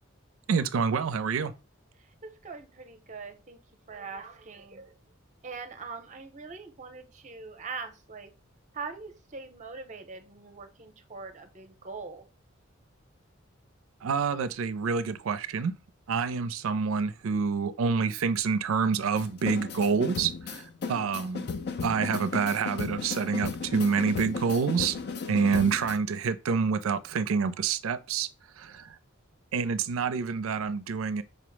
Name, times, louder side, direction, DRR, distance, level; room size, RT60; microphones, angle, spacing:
voice 1, 0.5-1.5 14.0-15.7 16.1-21.5 21.8-25.0 25.3-28.3 28.6-29.0 29.5-31.2, right 5 dB, 85° right, 0.4 m, -27 dB
voice 2, 2.2-3.6 3.9-5.0 5.4-8.3 8.7-12.3, right 4 dB, 35° right, 0.6 m, -42 dB
sound 1, 19.2-26.0, left 4 dB, 55° left, 0.4 m, -35 dB
5.1 x 2.0 x 3.0 m
head